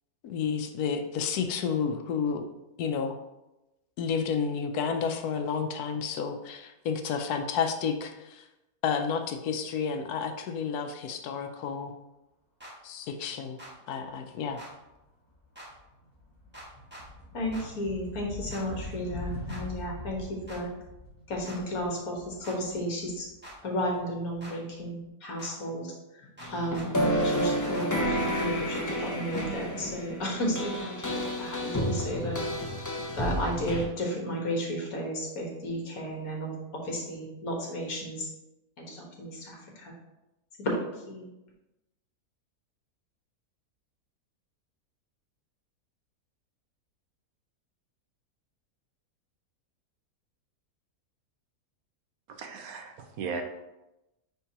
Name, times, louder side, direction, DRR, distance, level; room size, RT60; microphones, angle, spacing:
voice 1, 0.2-2.5 2.8-3.2 4.0-8.4 8.8-11.9 12.8-13.6 13.9-14.6, left 6 dB, 85° left, 6 dB, 1.1 m, -31 dB
sound 1, 12.6-12.7 13.6-13.7 14.6-14.7 15.5-15.7 16.5-17.0 17.5-17.7 18.5-18.6 19.5-19.6 20.5-20.6 21.4-21.6 22.4-22.6 23.4-23.6 24.4-24.5 25.4-25.5 26.4-26.9 27.4-27.9 28.3-28.8 29.3-29.5, right 1 dB, 5° right, 1.3 m, -45 dB
sound 2, 14.8-15.1 15.4-24.3, left 1 dB, 15° left, 1.8 m, -43 dB
voice 2, 17.3-20.7 21.3-23.3 23.6-25.9 26.2-26.9 27.2-32.4 33.1-38.3 38.8-39.9 40.6-41.3, equal, 65° left, -1 dB, 1.8 m, -33 dB
sound 3, 26.4-33.8, equal, 30° left, 0.3 m, -30 dB
voice 3, 52.3-53.4, right 5 dB, 70° right, 6 dB, 1.1 m, -37 dB
9.1 x 3.7 x 2.9 m, 0.97 s
omnidirectional pair, 1.6 m